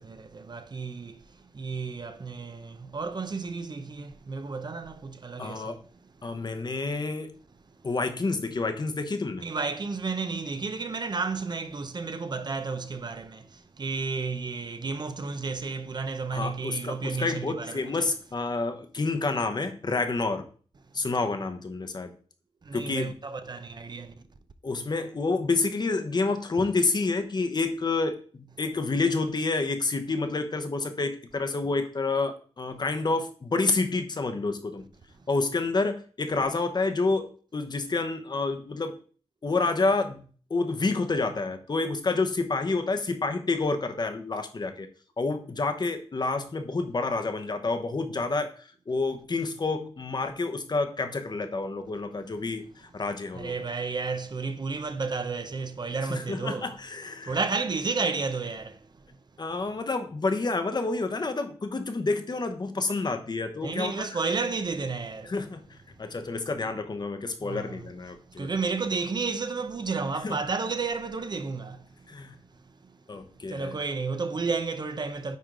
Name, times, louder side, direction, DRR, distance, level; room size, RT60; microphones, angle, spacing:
voice 1, 0.0-6.1 9.4-18.1 21.0-21.1 22.6-24.2 53.3-56.7 57.2-59.1 63.6-65.3 66.0-66.1 67.4-67.9 68.4-72.1 72.7-73.0 73.2-75.4, right 4 dB, 45° right, 0.6 m, -32 dB
voice 2, 5.4-5.8 6.2-7.3 7.8-9.5 16.3-20.5 20.9-22.1 22.7-23.1 24.6-34.9 35.3-38.9 39.4-40.2 40.5-44.9 45.2-48.5 48.9-53.5 56.1-57.4 59.4-64.2 65.3-65.6 66.0-68.5 70.2-70.4 72.1-72.3 73.1-73.7, left 3 dB, 40° left, 0.9 m, -29 dB
9.4 x 3.5 x 3.8 m
wide cardioid pair, 90°, 11 cm